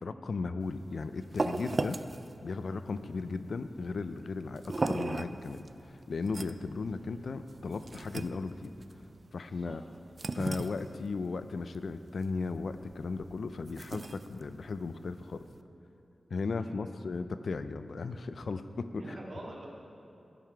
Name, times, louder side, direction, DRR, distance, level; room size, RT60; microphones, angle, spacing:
voice 1, 0.0-2.0 2.4-8.7 9.3-9.8 10.3-15.5 16.3-19.0, left 4 dB, 75° left, 10 dB, 0.4 m, -36 dB
sound 1, 0.6-15.6, right 3 dB, 45° right, 0.4 m, -39 dB
voice 2, 9.5-9.8 16.6-16.9 19.0-19.7, right 1 dB, 65° right, -3 dB, 2.0 m, -45 dB
16.0 x 5.7 x 4.6 m, 2.8 s
wide cardioid pair, 70°, 0 cm